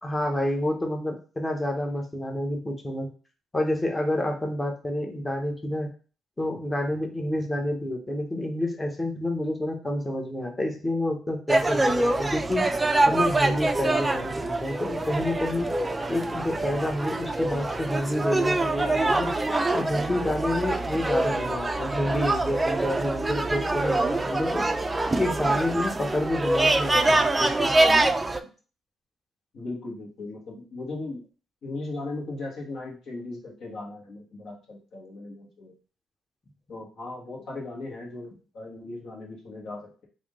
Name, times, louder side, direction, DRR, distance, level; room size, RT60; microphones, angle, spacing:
voice 1, 0.0-3.1 3.5-5.9 6.4-12.7 13.1-15.7 16.1-19.3 19.7-24.7 25.2-27.7, left 1 dB, 20° left, 2 dB, 1.0 m, -28 dB
sound 1, 11.5-28.4, right 2 dB, 20° right, 0.3 m, -25 dB
voice 2, 29.5-31.2 31.6-35.7 36.7-40.1, left 2 dB, 65° left, -2 dB, 1.5 m, -37 dB
3.5 x 2.7 x 3.7 m, 0.37 s
cardioid pair, 90°, 0 cm